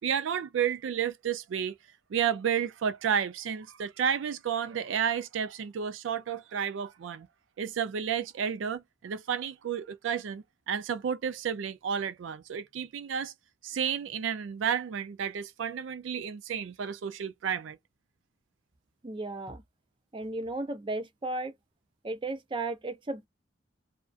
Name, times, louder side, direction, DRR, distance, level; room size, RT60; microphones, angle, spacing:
voice 1, 0.0-1.7 2.1-7.3 7.6-13.3 13.6-17.8, right 8 dB, 85° right, 0.4 m, -31 dB
voice 2, 19.0-19.6 20.1-21.5 22.0-23.3, right 2 dB, 25° right, 0.5 m, -34 dB
2.4 x 2.2 x 2.4 m
head